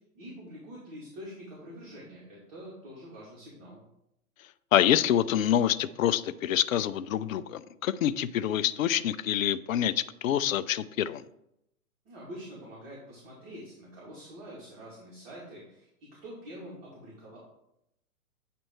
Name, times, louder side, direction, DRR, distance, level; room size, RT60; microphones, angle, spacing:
voice 1, 0.1-3.8 12.0-17.4, equal, 35° right, -6 dB, 2.6 m, -46 dB
voice 2, 4.7-11.2, left 10 dB, 65° left, 14 dB, 0.5 m, -26 dB
8.5 x 3.4 x 4.5 m, 0.81 s
hypercardioid pair, 125°, 45 cm